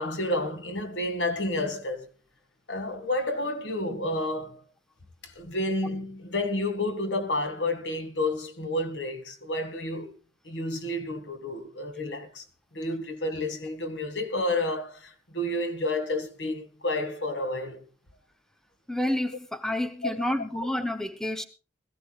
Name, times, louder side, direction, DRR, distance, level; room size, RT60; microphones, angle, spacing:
voice 1, 0.0-2.1 2.7-4.6 5.2-10.1 10.4-12.4 12.7-17.8 20.0-20.3, left 1 dB, 85° left, 2.0 m, -30 dB
voice 2, 18.9-21.4, left 1 dB, 5° left, 0.9 m, -29 dB
21.0 x 15.0 x 2.5 m
head